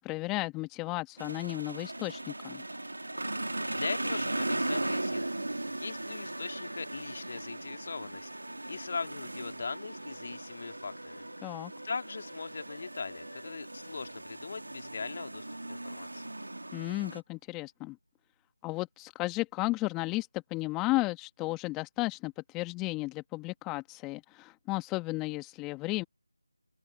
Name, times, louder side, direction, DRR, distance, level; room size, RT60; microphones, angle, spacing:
voice 1, 0.0-2.6 11.4-11.7 16.7-18.0 18.6-26.0, left 22 dB, 10° left, 1.4 m, -34 dB
sound 1, 1.2-17.2, right 2 dB, 70° right, 1.6 m, -38 dB
sound 2, 1.8-17.1, right 1 dB, 90° right, 7.9 m, -49 dB
voice 2, 3.7-5.3 5.8-11.6 11.8-16.2, left 4 dB, 40° left, 2.5 m, -40 dB
open air
figure-of-eight pair, 160°, 0 cm